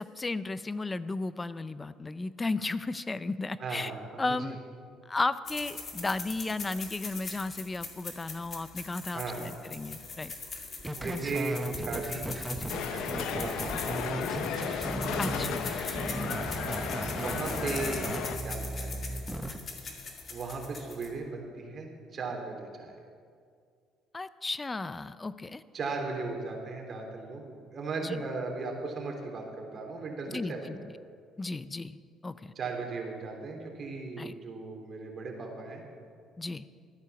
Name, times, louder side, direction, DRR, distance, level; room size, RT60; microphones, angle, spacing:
voice 1, 0.0-3.9 4.2-4.6 5.1-10.3 15.2-15.7 24.1-25.6 28.0-28.2 30.3-30.9 31.4-32.5 34.2-34.3 36.4-36.7, left 3 dB, 20° left, 15 dB, 0.5 m, -34 dB
voice 2, 3.6-4.5 9.1-9.4 11.0-12.4 12.7-14.5 17.1-18.1 18.4-19.0 20.3-23.0 25.7-30.7 32.5-35.8, right 3 dB, 45° right, 1 dB, 3.1 m, -37 dB
sound 1, 5.4-21.3, left 4 dB, 40° left, 2.3 m, -42 dB
sound 2, 10.8-19.6, right 1 dB, 10° right, 0.9 m, -36 dB
sound 3, 12.7-18.4, left 8 dB, 75° left, 0.9 m, -35 dB
13.0 x 9.5 x 7.0 m, 2.2 s
supercardioid pair, 85°, 0 cm